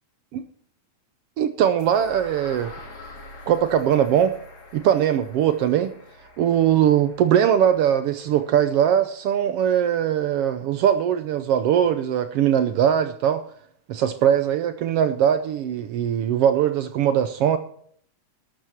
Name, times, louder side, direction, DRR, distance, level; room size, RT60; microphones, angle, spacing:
voice 1, 1.4-2.7 3.5-4.3 4.7-5.9 6.4-13.4 13.9-17.6, right 9 dB, 75° right, 11 dB, 1.4 m, -21 dB
sound 1, 1.8-9.7, left 2 dB, 35° left, 3.4 m, -46 dB
12.5 x 12.0 x 4.5 m, 0.63 s
omnidirectional pair, 3.3 m